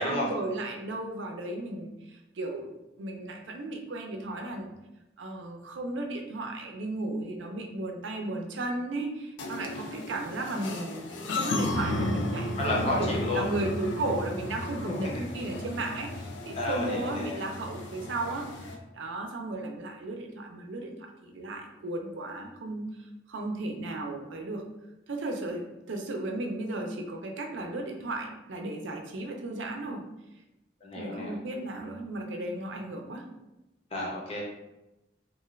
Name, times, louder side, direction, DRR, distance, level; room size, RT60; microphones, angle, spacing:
voice 1, 0.0-4.7 5.2-12.5 12.8-20.9 21.2-24.6 25.1-30.0 31.0-33.3, right 2 dB, 90° right, 2 dB, 0.5 m, -35 dB
sound 1, 9.4-18.8, left 1 dB, 90° left, 0.4 m, -34 dB
voice 2, 11.7-12.2 12.6-13.5 16.5-17.5 30.8-31.3 33.9-34.4, left 1 dB, 30° left, -3 dB, 0.6 m, -31 dB
2.5 x 2.3 x 3.1 m, 0.95 s
head